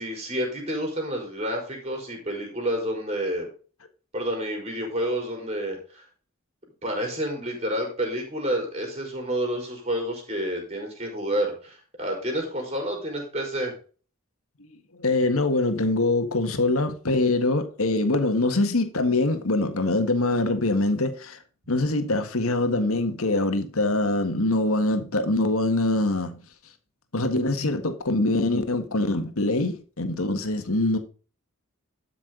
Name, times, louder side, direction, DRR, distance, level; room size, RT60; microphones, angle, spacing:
voice 1, 0.0-3.5 4.1-6.0 6.8-13.7, equal, 30° right, 4.7 m, -29 dB
voice 2, 14.6-21.4 21.7-26.4 27.1-31.0, left 2 dB, 80° left, 1.7 m, -24 dB
12.5 x 6.0 x 3.9 m
head